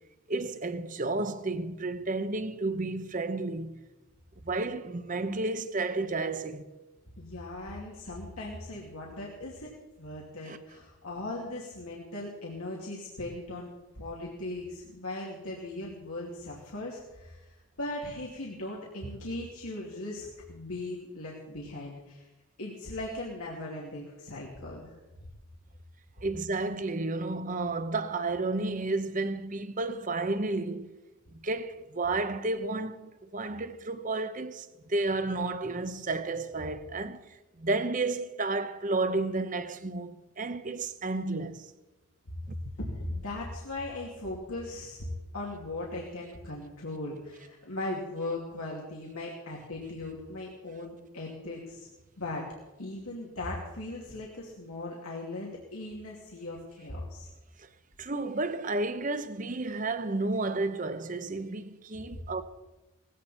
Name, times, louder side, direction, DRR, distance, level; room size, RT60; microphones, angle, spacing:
voice 1, 0.3-3.8 4.4-6.7 10.4-10.6 26.2-30.9 31.3-41.7 57.6-57.7 58.0-62.4, right 2 dB, 35° right, 0.9 m, -32 dB
voice 2, 7.2-9.7 10.0-22.3 22.6-25.0 42.4-42.5 43.0-45.1 45.3-51.9 52.2-52.4 52.8-57.3 62.1-62.2, left 2 dB, 85° left, 2.6 m, -38 dB
18.5 x 15.5 x 4.3 m
head